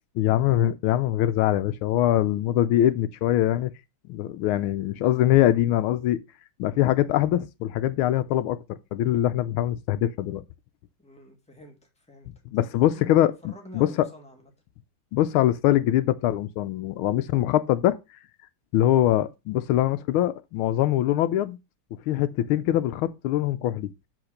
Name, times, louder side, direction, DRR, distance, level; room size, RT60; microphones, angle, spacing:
voice 1, 0.2-3.7 4.1-6.2 6.6-10.4 12.5-13.9 15.1-18.0 18.7-21.6 22.1-23.9, left 13 dB, 80° left, 1.4 m, -23 dB
voice 2, 11.0-12.3 12.5-14.5, equal, 5° left, 1.6 m, -48 dB
7.8 x 3.6 x 6.5 m
omnidirectional pair, 2.3 m